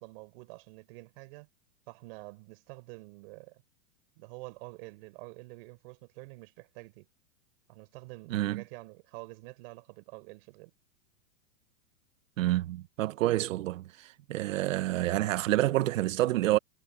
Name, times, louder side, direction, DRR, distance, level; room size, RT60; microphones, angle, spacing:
voice 1, 0.0-1.5 1.9-3.6 4.2-7.1 7.7-10.7, right 25 dB, 40° right, 4.4 m, -48 dB
voice 2, 8.3-8.6 12.4-13.8 14.3-16.6, right 15 dB, 65° right, 0.9 m, -28 dB
supercardioid pair, 165°, 42 cm